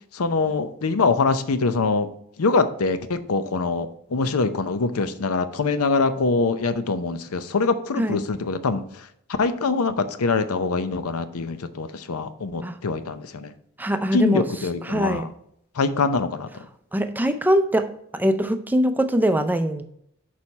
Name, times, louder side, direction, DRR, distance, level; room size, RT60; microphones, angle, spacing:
voice 1, 0.1-2.1 2.4-8.8 9.4-13.5 14.1-15.3 15.8-16.5, left 4 dB, 80° left, 11 dB, 0.6 m, -24 dB
voice 2, 13.8-14.5 14.8-15.3 16.9-19.8, equal, 10° right, 8 dB, 0.5 m, -22 dB
6.3 x 4.3 x 5.2 m, 0.73 s
head